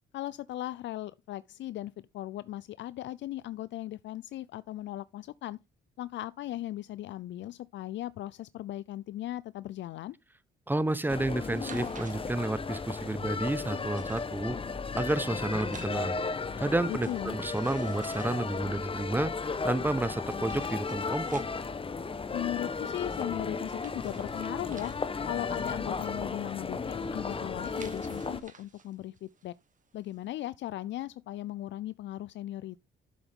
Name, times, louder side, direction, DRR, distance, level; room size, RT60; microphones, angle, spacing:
voice 1, 0.1-5.6 6.0-10.2 16.9-17.4 22.3-24.9 25.3-29.5 29.9-32.8, left 14 dB, 65° left, 0.4 m, -38 dB
voice 2, 10.7-14.5 15.0-16.2 16.6-19.3 19.6-21.4, right 2 dB, 10° right, 1.0 m, -30 dB
sound 1, 11.1-28.4, left 4 dB, 25° left, 1.0 m, -35 dB
sound 2, 11.5-30.4, right 6 dB, 40° right, 1.6 m, -55 dB
10.5 x 7.1 x 3.6 m
cardioid pair, 90°, 20 cm